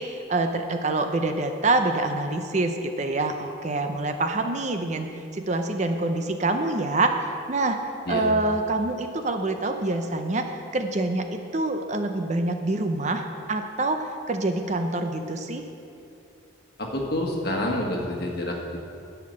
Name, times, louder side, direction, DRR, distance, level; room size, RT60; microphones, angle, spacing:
voice 1, 0.0-7.8 8.1-10.5 10.7-15.6, right 2 dB, 35° right, 6 dB, 0.6 m, -26 dB
voice 2, 16.8-18.8, left 1 dB, 50° left, -1 dB, 1.6 m, -28 dB
11.0 x 5.8 x 7.7 m, 2.7 s
head